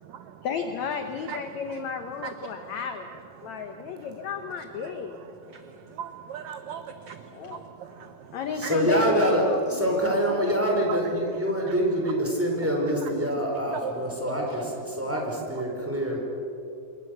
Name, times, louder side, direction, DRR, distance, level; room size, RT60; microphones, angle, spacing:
voice 1, 0.4-3.1 3.4-5.1 7.3-7.6 8.3-10.6, left 6 dB, 70° left, 6 dB, 1.8 m, -33 dB
voice 2, 6.0-7.1 8.6-8.8 10.9-11.0 13.0-13.1 13.8-13.9 14.3-14.4, right 8 dB, 75° right, 8 dB, 1.7 m, -36 dB
voice 3, 8.5-16.2, equal, 5° right, -1 dB, 4.7 m, -25 dB
27.0 x 23.0 x 6.8 m, 2.8 s
omnidirectional pair, 4.4 m